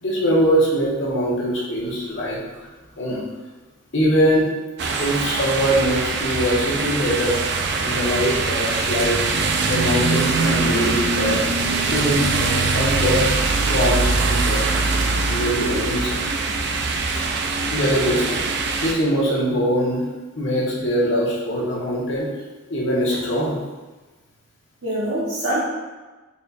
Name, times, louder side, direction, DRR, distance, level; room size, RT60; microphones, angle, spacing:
voice 1, 0.0-2.4 3.0-3.2 3.9-4.5 5.0-7.5 7.8-9.2 9.6-11.5 11.9-14.7 15.3-16.1 17.7-18.4 18.8-20.0 20.4-22.3 22.7-23.6, equal, 65° left, -5 dB, 1.1 m, -22 dB
sound 1, 4.8-18.9, right 3 dB, 55° right, 0.4 m, -22 dB
voice 2, 24.8-25.6, right 1 dB, 80° right, -9 dB, 1.1 m, -25 dB
4.2 x 2.3 x 4.0 m, 1.2 s
head